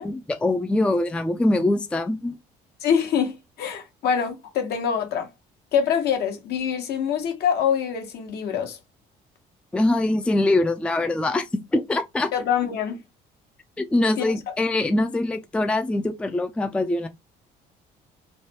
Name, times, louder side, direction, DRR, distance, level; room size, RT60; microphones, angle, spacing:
voice 1, 0.0-2.3 9.7-12.3 13.8-17.1, left 2 dB, 5° left, 0.3 m, -23 dB
voice 2, 2.8-5.3 5.7-8.8 12.3-13.0 14.2-14.5, left 7 dB, 70° left, 1.0 m, -25 dB
3.2 x 2.2 x 2.8 m
cardioid pair, 110°, 17 cm